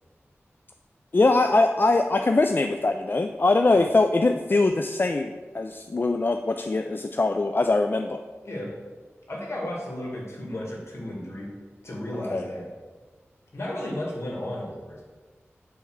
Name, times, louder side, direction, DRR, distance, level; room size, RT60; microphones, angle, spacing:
voice 1, 1.1-8.2 12.3-12.4, left 3 dB, 45° left, 6 dB, 0.4 m, -22 dB
voice 2, 9.3-11.5 11.8-12.7 13.5-15.0, left 1 dB, 65° left, -3 dB, 2.1 m, -34 dB
7.6 x 3.5 x 6.4 m, 1.4 s
cardioid pair, 40°, 5 cm